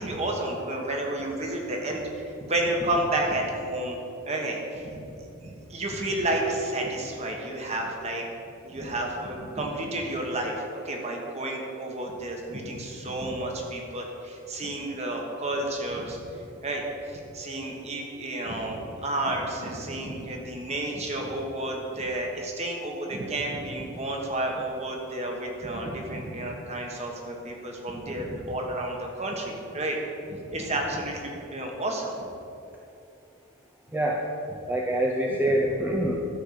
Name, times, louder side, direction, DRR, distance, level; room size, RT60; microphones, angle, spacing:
voice 1, 0.0-4.0 4.2-5.0 5.4-8.2 8.6-16.2 16.6-30.0 30.2-32.3, right 1 dB, 30° right, 0 dB, 1.5 m, -31 dB
voice 2, 33.9-34.2 34.7-36.2, right 1 dB, 10° right, -2 dB, 0.7 m, -25 dB
13.0 x 4.6 x 7.5 m, 2.8 s
head